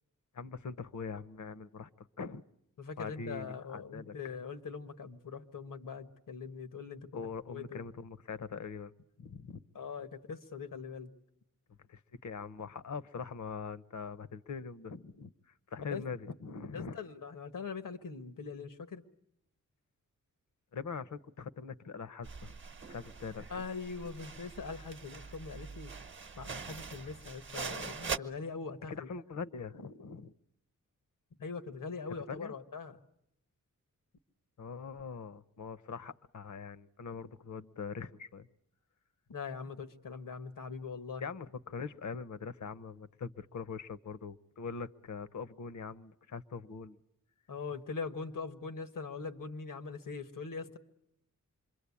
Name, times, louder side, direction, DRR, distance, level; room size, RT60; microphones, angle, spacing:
voice 1, 0.3-2.4 3.0-4.1 7.1-8.9 9.2-9.6 11.9-15.3 15.7-17.0 20.7-22.5 22.9-23.6 28.9-30.3 32.3-32.5 34.6-38.5 41.2-47.0, left 5 dB, 65° left, 14 dB, 0.9 m, -42 dB
voice 2, 2.8-7.1 7.5-7.8 9.7-11.1 15.8-16.0 16.7-19.0 23.5-25.9 26.4-29.1 31.4-33.0 39.3-41.2 47.5-50.8, left 5 dB, 85° left, 9 dB, 1.4 m, -42 dB
sound 1, 22.2-28.2, right 5 dB, 40° right, 0.9 m, -43 dB
26.5 x 22.5 x 8.5 m, 0.77 s
wide cardioid pair, 90°, 32 cm